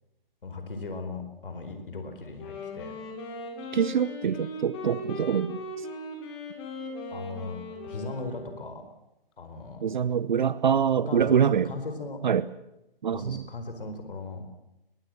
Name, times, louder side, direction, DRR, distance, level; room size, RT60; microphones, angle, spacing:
voice 1, 0.4-2.9 7.1-8.8 9.4-9.9 10.9-12.2 13.1-14.4, left 3 dB, 65° left, 7 dB, 4.5 m, -38 dB
Wind instrument woodwind instrument, 2.3-8.8, left 2 dB, 30° left, 6.8 m, -39 dB
voice 2, 3.7-5.9 9.8-11.7 12.2-12.4 13.0-13.4, right 8 dB, 50° right, 17 dB, 0.9 m, -25 dB
22.0 x 22.0 x 7.6 m, 0.90 s
figure-of-eight pair, 135°, 30 cm